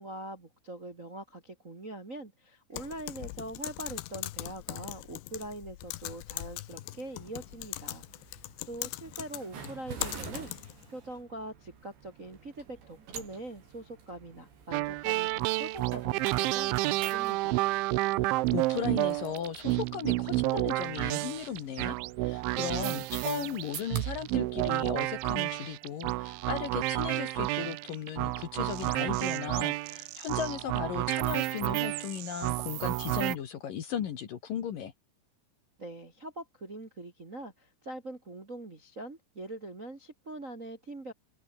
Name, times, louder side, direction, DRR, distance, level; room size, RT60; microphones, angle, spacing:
voice 1, 0.0-17.6 35.8-41.1, right 1 dB, 25° right, 1.8 m, -43 dB
Typing, 2.8-10.9, left 17 dB, 75° left, 2.9 m, -40 dB
sound 1, 6.7-25.8, right 6 dB, 70° right, 7.2 m, -49 dB
sound 2, 14.7-33.4, right 20 dB, 90° right, 3.2 m, -30 dB
voice 2, 18.2-34.9, left 8 dB, 55° left, 2.9 m, -36 dB
omnidirectional pair, 5.3 m